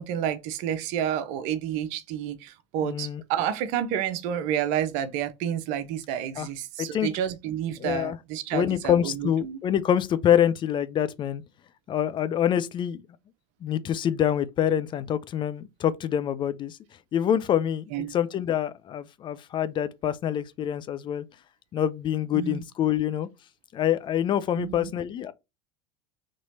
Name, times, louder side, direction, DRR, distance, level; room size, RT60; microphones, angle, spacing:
voice 1, 0.0-9.6 17.9-18.1 22.3-22.6 24.6-24.9, right 9 dB, 50° right, 0.7 m, -30 dB
voice 2, 2.8-3.2 6.4-6.5 6.8-7.1 7.8-8.2 8.5-11.4 11.9-13.0 13.6-16.8 17.1-21.2 21.7-23.3 23.7-25.3, left 10 dB, 30° left, 0.4 m, -26 dB
4.2 x 3.0 x 2.6 m
figure-of-eight pair, 75°, 16 cm